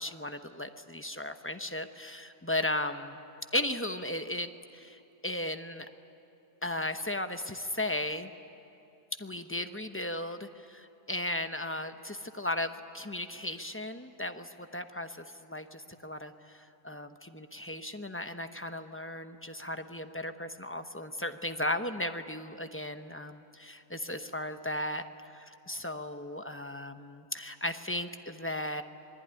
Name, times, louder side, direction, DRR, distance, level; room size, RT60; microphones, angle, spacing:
voice 1, 0.0-3.2 3.5-5.9 6.6-8.3 9.2-25.0 25.3-28.8, left 1 dB, 10° left, 8 dB, 0.6 m, -36 dB
26.0 x 21.5 x 10.0 m, 2.9 s
omnidirectional pair, 1.5 m